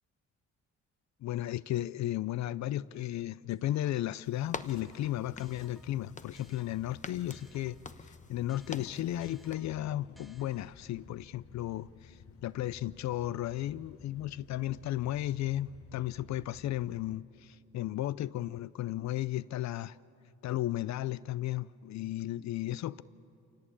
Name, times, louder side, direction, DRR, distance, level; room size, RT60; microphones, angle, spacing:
voice 1, 1.2-20.0 20.4-23.0, left 14 dB, 65° left, 0.5 m, -34 dB
sound 1, 3.5-4.2 4.7-8.0 8.5-11.0, equal, ahead, 1.1 m, -63 dB
sound 2, 4.2-9.5, left 4 dB, 25° left, 0.9 m, -47 dB
sound 3, 4.6-17.2, left 5 dB, 50° left, 1.1 m, -55 dB
27.5 x 17.5 x 8.6 m
cardioid pair, 90°, 30 cm